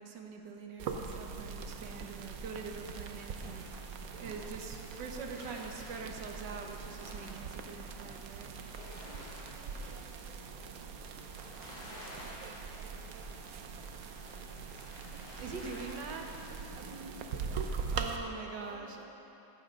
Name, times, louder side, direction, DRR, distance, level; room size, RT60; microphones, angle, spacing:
voice 1, 0.0-3.9 4.2-8.5 15.4-16.4 17.9-19.1, right 4 dB, 85° right, 2 dB, 1.8 m, -44 dB
sound 1, 0.8-18.2, right 5 dB, 60° right, 1.1 m, -42 dB
sound 2, 3.2-18.1, left 1 dB, 30° left, 3.0 m, -54 dB
voice 2, 4.0-4.5 8.7-14.6 15.1-15.5 16.5-19.1, right 2 dB, 20° right, -1 dB, 1.3 m, -56 dB
14.5 x 14.5 x 3.7 m, 3.0 s
omnidirectional pair, 1.9 m